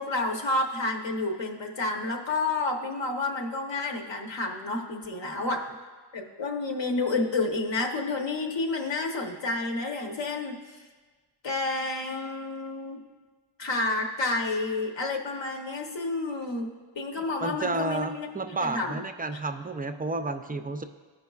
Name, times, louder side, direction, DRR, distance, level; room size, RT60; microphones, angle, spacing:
voice 1, 0.0-5.7 6.1-10.8 11.4-13.0 13.6-19.0, left 2 dB, 60° left, 2 dB, 1.0 m, -30 dB
voice 2, 17.4-20.8, right 3 dB, 20° right, 8 dB, 0.3 m, -31 dB
14.5 x 5.2 x 2.3 m, 1.4 s
wide cardioid pair, 85°, 50 cm